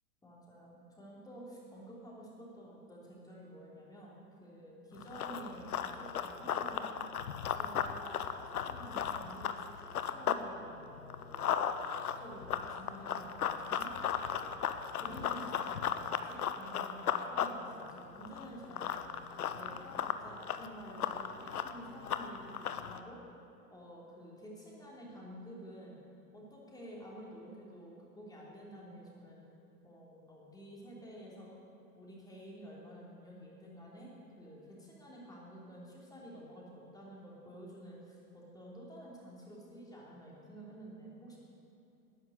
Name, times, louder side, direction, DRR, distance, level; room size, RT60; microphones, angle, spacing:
voice 1, 0.2-6.9 7.5-13.9 14.3-14.7 14.9-23.2 23.7-26.0 26.3-29.4 29.8-31.6 32.0-41.4, right 1 dB, 10° left, -4 dB, 3.3 m, -50 dB
Run, 5.0-10.4 10.8-23.0, left 8 dB, 75° left, 0.9 m, -36 dB
12.0 x 9.8 x 7.9 m, 2.9 s
hypercardioid pair, 105°, 45 cm